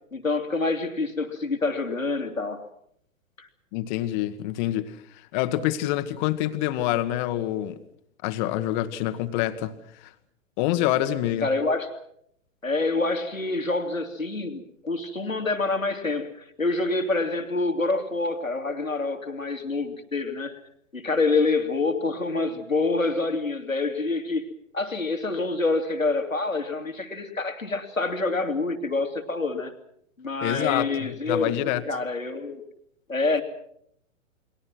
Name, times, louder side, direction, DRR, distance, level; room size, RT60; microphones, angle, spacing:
voice 1, 0.1-2.6 3.4-3.5 11.4-11.9 12.6-20.6 20.9-24.4 24.7-29.7 30.2-32.6 33.1-33.4, left 3 dB, 90° left, 2.7 m, -27 dB
voice 2, 3.7-5.0 5.3-7.8 8.2-9.7 10.0-10.1 10.6-11.5 30.4-31.8, left 14 dB, 35° left, 1.6 m, -26 dB
29.5 x 22.0 x 6.1 m
figure-of-eight pair, 110°, 39 cm